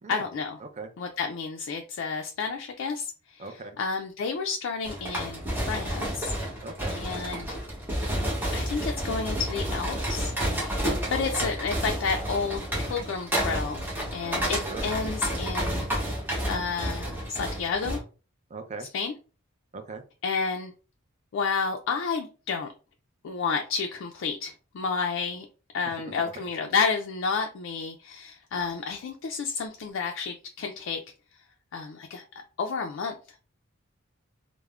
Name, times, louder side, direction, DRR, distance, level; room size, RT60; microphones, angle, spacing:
voice 1, 0.1-0.6 1.0-3.4 3.8-6.3 6.9-7.6 8.5-10.3 11.1-13.8 14.1-15.9 16.5-18.0 18.9-19.1 20.2-20.7 21.3-22.7 23.2-25.5 25.7-31.0 31.7-32.2 32.6-33.1, left 5 dB, 65° left, 3 dB, 0.3 m, -30 dB
voice 2, 0.6-0.9 3.4-3.7 6.6-7.0 10.8-11.1 14.6-14.9 18.5-18.9 19.7-20.0 25.8-26.4, right 3 dB, 35° right, 6 dB, 0.4 m, -40 dB
sound 1, 4.8-18.0, equal, 10° right, 0.9 m, -30 dB
3.4 x 2.1 x 2.3 m, 0.35 s
head